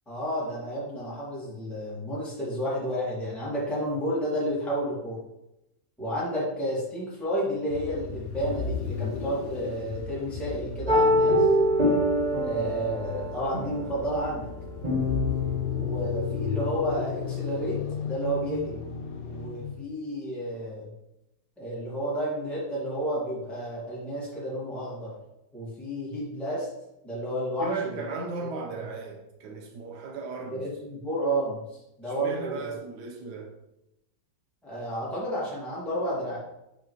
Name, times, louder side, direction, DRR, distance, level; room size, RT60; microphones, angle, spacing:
voice 1, 0.1-5.2 6.0-11.5 12.4-14.5 15.7-17.8 18.0-18.8 19.3-20.9 21.6-25.1 25.5-26.7 27.0-27.7 30.5-32.7 34.6-36.4, equal, ahead, 2.0 m, -31 dB
sound 1, 7.7-19.9, left 4 dB, 65° left, 0.9 m, -35 dB
sound 2, 10.9-17.6, left 1 dB, 25° right, 1.5 m, -26 dB
voice 2, 27.6-30.7 32.1-33.5, right 4 dB, 60° right, 1.6 m, -36 dB
6.6 x 5.5 x 3.2 m
omnidirectional pair, 2.1 m